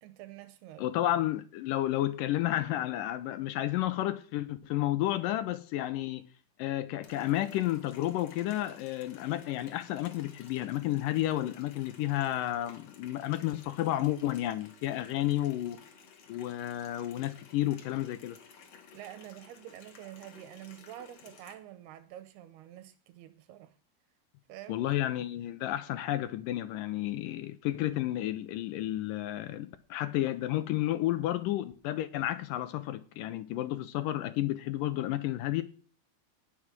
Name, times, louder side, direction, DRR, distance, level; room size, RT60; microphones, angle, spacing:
voice 1, 0.0-0.8 18.9-23.7 24.5-24.9, right 13 dB, 85° right, 2.8 m, -47 dB
voice 2, 0.8-6.3 6.6-15.8 16.3-18.4 24.7-35.6, left 14 dB, 80° left, 2.0 m, -31 dB
Water tap faucet, 7.0-21.5, left 6 dB, 50° left, 2.3 m, -55 dB
18.5 x 6.2 x 6.0 m
omnidirectional pair, 4.6 m